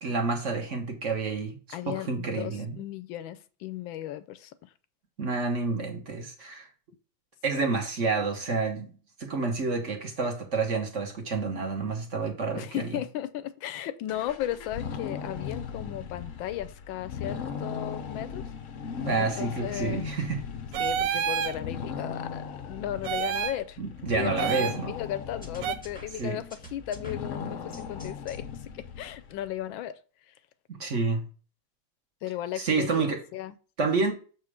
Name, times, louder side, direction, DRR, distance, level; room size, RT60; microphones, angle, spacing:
voice 1, 0.0-2.8 5.2-6.7 7.4-8.9 9.2-12.9 18.9-20.4 23.8-24.9 26.2-26.4 30.7-31.3 32.5-33.2 33.8-34.1, right 4 dB, 40° right, 1.3 m, -29 dB
voice 2, 1.7-4.7 12.5-18.4 19.2-20.1 20.8-23.8 24.1-30.0 30.3-30.4 32.2-33.5, left 12 dB, 75° left, 1.3 m, -36 dB
sound 1, 14.1-29.5, left 6 dB, 60° left, 0.8 m, -38 dB
sound 2, 20.7-21.6 23.0-23.6 24.4-24.8 25.6-25.8, right 8 dB, 70° right, 1.2 m, -28 dB
sound 3, 25.4-28.4, left 1 dB, 5° left, 1.2 m, -47 dB
6.9 x 4.4 x 4.9 m
omnidirectional pair, 2.3 m